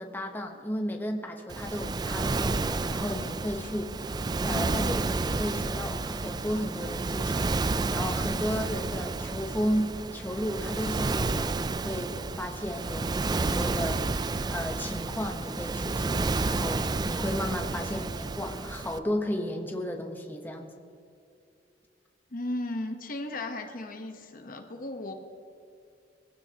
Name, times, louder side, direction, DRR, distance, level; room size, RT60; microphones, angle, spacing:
voice 1, 0.0-3.9 4.4-20.7, equal, 10° left, 3 dB, 1.0 m, -34 dB
Waves surf, 1.5-19.0, right 3 dB, 25° right, 0.4 m, -30 dB
voice 2, 22.3-25.1, left 1 dB, 55° left, 5 dB, 1.0 m, -35 dB
22.5 x 15.5 x 2.9 m, 2.5 s
head